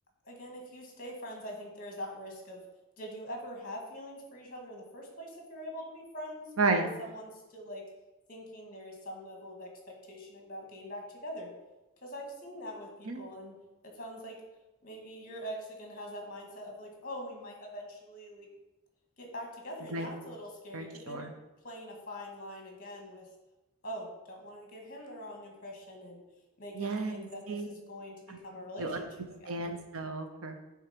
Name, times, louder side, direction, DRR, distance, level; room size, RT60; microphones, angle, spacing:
voice 1, 0.2-2.6 3.0-7.8 8.3-11.5 12.0-13.5 13.9-14.4 14.8-18.5 19.2-21.3 21.6-23.3 23.8-26.2 26.6-29.1 29.4-29.7, equal, 40° left, 1 dB, 1.7 m, -43 dB
voice 2, 20.7-21.3 26.7-27.7 28.3-28.4 28.8-29.0 29.5-30.6, right 3 dB, 70° right, 6 dB, 0.8 m, -32 dB
8.8 x 3.5 x 5.1 m, 1.0 s
head